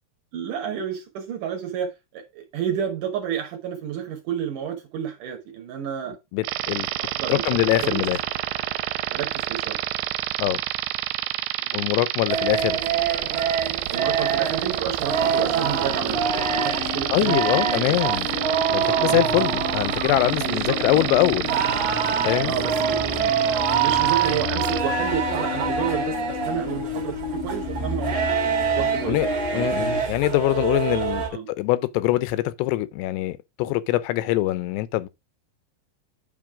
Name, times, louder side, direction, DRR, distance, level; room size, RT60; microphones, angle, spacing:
voice 1, 0.3-6.2 7.0-8.0 9.1-9.8 11.6-11.8 13.9-18.0 18.8-19.2 20.5-21.1 22.4-23.4 23.7-28.4 28.8-29.2 29.5-29.7 31.3-31.5, right 9 dB, 65° right, 2.2 m, -30 dB
voice 2, 6.3-6.9 7.3-8.2 10.4-10.6 11.7-12.8 17.1-18.3 18.7-21.5 22.3-22.5 29.1-29.3 29.5-31.2 31.6-35.1, left 17 dB, 85° left, 2.7 m, -23 dB
sound 1, 6.4-24.8, right 15 dB, 85° right, 2.5 m, -28 dB
sound 2, 12.3-31.3, right 7 dB, 45° right, 1.6 m, -26 dB
sound 3, 15.1-30.0, left 9 dB, 40° left, 1.1 m, -33 dB
9.1 x 3.1 x 4.8 m
omnidirectional pair, 4.7 m